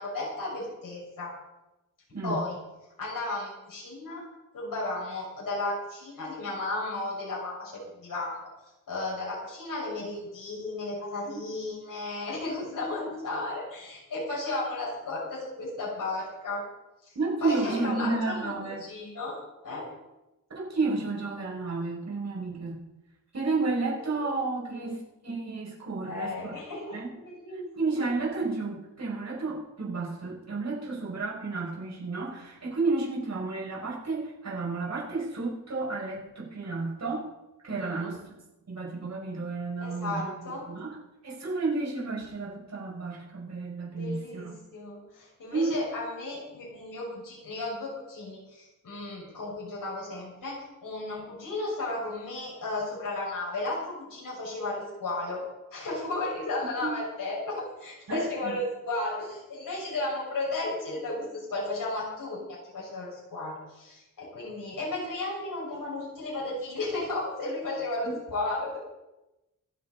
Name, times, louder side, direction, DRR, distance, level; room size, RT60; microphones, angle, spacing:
voice 1, 0.0-1.3 2.2-2.6 3.0-4.2 4.5-8.4 8.9-16.6 17.0-17.2 17.4-19.4 19.6-19.9 24.1-24.2 24.7-24.9 26.0-28.0 37.8-38.1 39.8-40.7 43.9-55.4 55.7-68.8, left 2 dB, 85° left, -5 dB, 6.4 m, -34 dB
voice 2, 2.1-2.4 11.2-11.4 17.1-18.8 20.5-22.8 23.3-26.6 26.9-27.2 27.7-37.2 37.6-38.2 38.7-40.3 40.7-41.0 41.2-44.5 45.5-45.7 56.8-57.0 58.1-58.6 68.0-68.1, right 3 dB, 55° right, -4 dB, 6.5 m, -31 dB
25.5 x 9.9 x 4.2 m, 0.98 s
wide cardioid pair, 175°, 32 cm